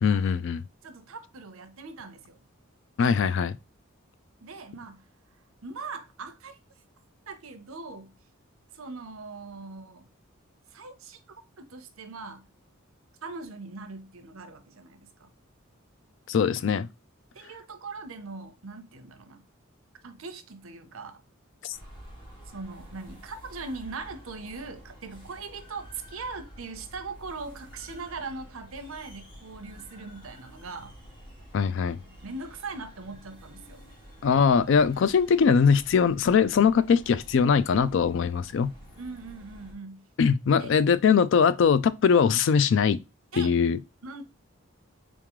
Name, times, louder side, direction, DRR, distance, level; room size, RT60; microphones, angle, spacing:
voice 1, 0.0-0.6 3.0-3.6 16.3-16.9 21.6-21.8 31.5-32.0 34.2-38.7 40.2-43.0 43.3-43.8, left 6 dB, 60° left, 0.3 m, -21 dB
voice 2, 0.8-2.4 4.4-5.1 5.6-6.6 7.3-8.1 8.7-10.1 10.7-12.5 13.2-15.3 17.3-19.4 20.0-21.2 22.5-31.0 32.2-33.8 39.0-40.0 40.6-40.8 41.1-41.2 43.3-43.5 44.0-44.2, right 4 dB, 80° right, 0.7 m, -40 dB
sound 1, 21.7-39.7, equal, 20° left, 1.8 m, -49 dB
3.7 x 3.6 x 3.0 m
head